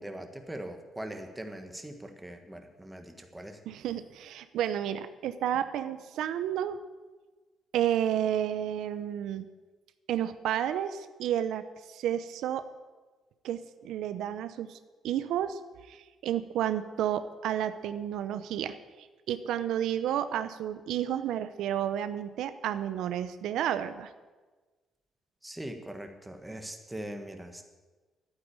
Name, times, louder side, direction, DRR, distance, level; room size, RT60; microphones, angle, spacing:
voice 1, 0.0-3.6 25.4-27.6, right 1 dB, 10° right, 5 dB, 1.5 m, -41 dB
voice 2, 3.7-6.8 7.7-9.5 10.1-12.6 13.4-14.8 15.0-15.6 15.9-24.1, right 10 dB, 85° right, 11 dB, 0.7 m, -31 dB
12.0 x 9.2 x 8.7 m, 1.3 s
cardioid pair, 125°, 0 cm